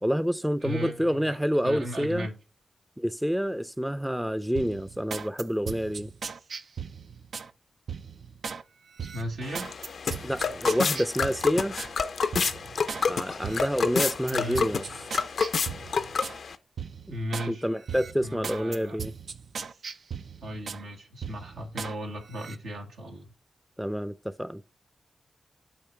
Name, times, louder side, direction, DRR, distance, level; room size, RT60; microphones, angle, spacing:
voice 1, 0.0-2.3 3.0-6.1 10.2-11.8 13.1-14.8 17.1-17.2 17.5-19.1 23.8-24.6, equal, 5° right, 0.5 m, -28 dB
voice 2, 0.6-1.4 1.6-2.3 9.0-9.7 14.3-14.7 17.1-17.7 18.2-19.0 20.4-23.3, equal, 90° right, 1.5 m, -36 dB
sound 1, 4.5-7.5 7.9-8.6 9.0-11.9 12.3-13.1 13.4-16.4 16.8-17.5 17.9-20.8 21.2-21.9 22.3-22.6, right 6 dB, 75° right, 0.4 m, -38 dB
sound 2, 9.4-16.5, left 5 dB, 75° left, 0.5 m, -29 dB
8.5 x 3.1 x 4.5 m
supercardioid pair, 40°, 0 cm